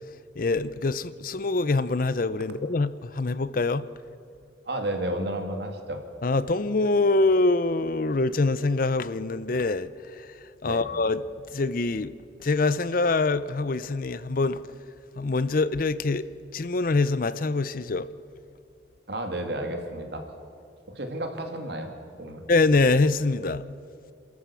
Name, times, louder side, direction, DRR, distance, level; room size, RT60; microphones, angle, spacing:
voice 1, 0.4-3.9 6.2-12.1 12.4-14.7 15.2-16.3 16.5-18.1 22.5-23.7, left 3 dB, 45° left, 0.6 m, -25 dB
voice 2, 4.7-6.0 10.6-10.8 19.1-20.2 20.9-21.9 22.2-22.4, right 1 dB, 60° right, 2.5 m, -32 dB
28.0 x 13.5 x 7.0 m
head